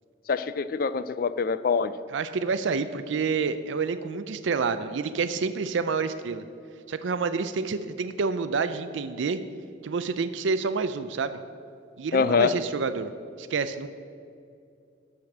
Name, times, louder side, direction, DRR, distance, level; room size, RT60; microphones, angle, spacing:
voice 1, 0.3-1.9 12.1-12.5, left 5 dB, 50° left, 15 dB, 0.3 m, -24 dB
voice 2, 2.1-6.4 6.9-9.4 9.8-11.4 12.0-13.1 13.4-13.9, right 4 dB, 80° right, 11 dB, 0.4 m, -28 dB
12.5 x 5.1 x 7.1 m, 2.5 s
head